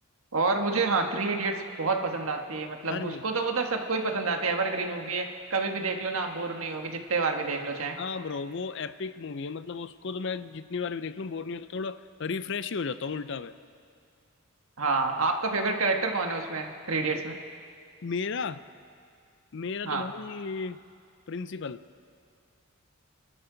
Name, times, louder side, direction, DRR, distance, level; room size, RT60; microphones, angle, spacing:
voice 1, 0.3-8.0 14.8-17.3 19.8-20.1, right 3 dB, 90° right, 4 dB, 1.5 m, -28 dB
voice 2, 2.9-3.2 8.0-13.5 17.1-17.2 18.0-18.6 19.5-20.8 21.3-21.8, left 5 dB, 60° left, 13 dB, 0.5 m, -34 dB
29.5 x 12.5 x 3.9 m, 2.3 s
head